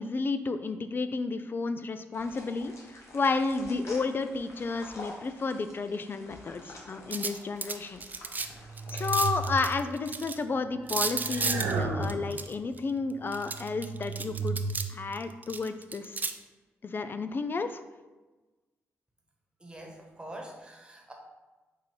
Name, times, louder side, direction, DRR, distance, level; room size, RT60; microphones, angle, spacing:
voice 1, 0.0-2.7 3.1-8.0 8.9-14.6 14.9-16.2 16.8-17.8, left 4 dB, 40° left, 10 dB, 0.4 m, -31 dB
sound 1, 2.1-9.6, left 2 dB, 60° left, 1.1 m, -48 dB
sound 2, 7.1-8.5 8.8-10.3 10.9-12.8 13.3-14.9 15.1-16.3, right 4 dB, 35° right, 0.4 m, -33 dB
sound 3, 8.6-10.0 10.8-12.6 13.3-14.7, right 3 dB, 85° right, 0.6 m, -34 dB
voice 2, 19.6-21.1, right 1 dB, 15° right, 0 dB, 1.2 m, -44 dB
4.6 x 2.5 x 4.5 m, 1.2 s
cardioid pair, 60°, 5 cm